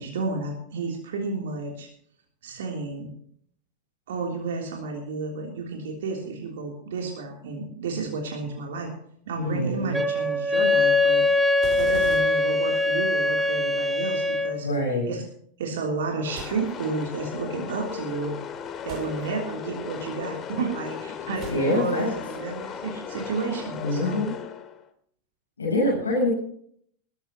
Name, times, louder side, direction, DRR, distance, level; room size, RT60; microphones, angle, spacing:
voice 1, 0.0-1.9 2.4-3.1 4.1-8.9 9.2-11.4 11.8-14.7 15.1-15.2 15.6-18.4 18.8-24.2, right 4 dB, 65° right, 0 dB, 3.3 m, -31 dB
voice 2, 9.4-10.0 14.6-15.1 21.5-22.2 23.8-24.3 25.6-26.3, left 1 dB, 85° left, -2 dB, 6.9 m, -25 dB
Wind instrument woodwind instrument, 9.9-14.6, left 2 dB, 5° right, 1.4 m, -22 dB
sound 1, 11.6-13.3 16.4-17.2 18.9-19.8 21.4-22.3, right 6 dB, 40° right, 4.8 m, -43 dB
sound 2, 16.3-24.9, left 8 dB, 35° left, 2.5 m, -36 dB
20.5 x 14.5 x 3.0 m, 0.63 s
figure-of-eight pair, 90°, 0 cm